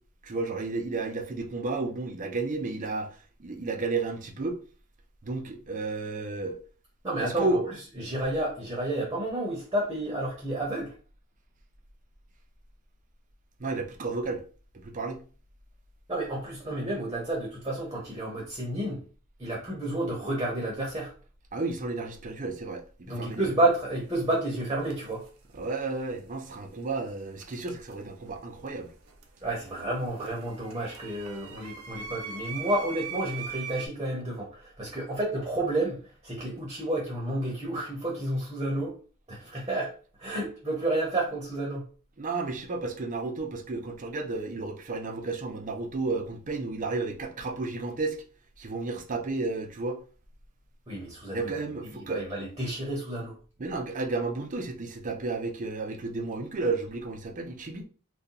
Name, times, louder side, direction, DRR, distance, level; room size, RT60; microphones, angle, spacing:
voice 1, 0.2-3.1 3.4-4.6 5.2-6.6 7.2-7.7 13.6-14.4 14.7-15.2 21.5-23.5 25.5-28.9 42.2-48.2 48.6-50.0 51.3-52.2 53.6-57.8, right 3 dB, 40° right, 0.5 m, -32 dB
voice 2, 7.0-7.6 8.0-10.9 16.1-19.0 19.4-21.1 23.1-25.2 29.4-36.0 36.2-39.0 39.3-39.9 40.2-41.8 50.9-51.5 52.1-53.3, right 1 dB, 20° right, 0.9 m, -30 dB
sound 1, 23.3-23.5 24.7-25.3 27.4-28.4 28.7-33.9, right 6 dB, 90° right, 0.6 m, -41 dB
2.7 x 2.2 x 3.8 m
head